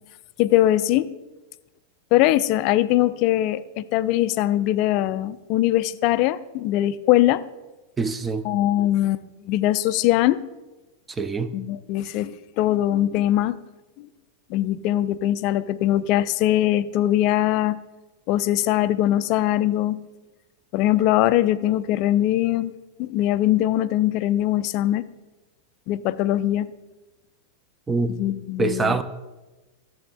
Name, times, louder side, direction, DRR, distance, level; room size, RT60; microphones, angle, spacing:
voice 1, 0.4-1.1 2.1-7.4 8.4-10.4 11.5-13.6 14.0-14.1 14.5-17.8 18.3-20.0 20.7-22.7 23.0-25.0 25.9-26.7 28.2-29.0, left 14 dB, 45° left, 0.3 m, -21 dB
voice 2, 8.0-8.4 11.1-11.5 27.9-28.1 28.6-29.0, right 3 dB, 15° right, 0.5 m, -24 dB
14.0 x 7.2 x 2.3 m
figure-of-eight pair, 90°, 0 cm